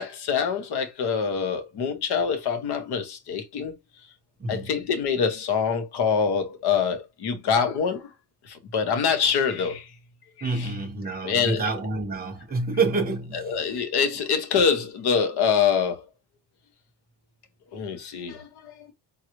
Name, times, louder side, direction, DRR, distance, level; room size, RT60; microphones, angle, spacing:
voice 1, 0.0-3.7 4.5-8.1 8.4-9.9 10.4-10.7 11.2-11.6 13.5-16.0 17.7-18.9, left 6 dB, 60° left, 0.9 m, -25 dB
voice 2, 4.4-4.8 10.4-13.7, right 3 dB, 20° right, 1.0 m, -28 dB
3.8 x 2.0 x 3.0 m
cardioid pair, 175°, 44 cm